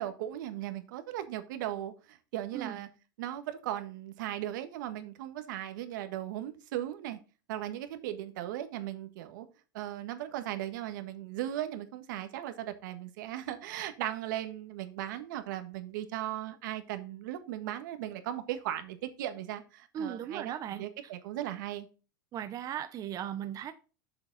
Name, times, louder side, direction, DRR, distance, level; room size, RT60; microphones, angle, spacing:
voice 1, 0.0-2.9 3.2-7.2 7.5-9.5 9.7-21.9, right 12 dB, 70° right, 9 dB, 1.5 m, -37 dB
voice 2, 19.9-21.1 22.3-23.7, right 9 dB, 35° right, 9 dB, 0.8 m, -37 dB
7.1 x 6.7 x 4.0 m, 0.34 s
supercardioid pair, 120°, 11 cm